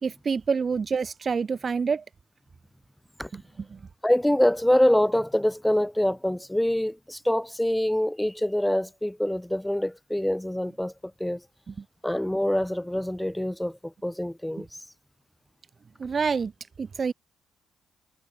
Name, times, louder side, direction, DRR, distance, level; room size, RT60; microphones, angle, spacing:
voice 1, 0.0-2.0 3.3-3.4 3.7-3.8 11.7-11.8 16.0-16.5 16.8-17.1, right 5 dB, 40° right, 2.5 m, -27 dB
voice 2, 4.0-10.9 11.2-11.4 12.0-14.7, left 1 dB, 5° left, 6.4 m, -25 dB
cardioid pair, 90°, 0 cm